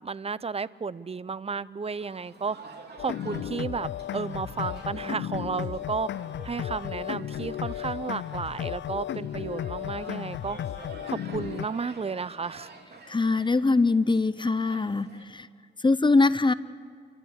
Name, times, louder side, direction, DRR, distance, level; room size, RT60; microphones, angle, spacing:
voice 1, 0.0-2.6 3.0-6.1 6.4-10.6 11.1-12.7, right 5 dB, 30° right, 18 dB, 0.6 m, -33 dB
sound 1, 2.0-15.2, right 3 dB, 55° right, 3.3 m, -49 dB
sound 2, 3.0-11.7, left 11 dB, 65° left, 0.4 m, -34 dB
voice 2, 13.1-15.5 15.8-16.5, left 3 dB, 25° left, 16 dB, 0.7 m, -23 dB
28.5 x 13.0 x 8.2 m, 2.2 s
cardioid pair, 65°, 20 cm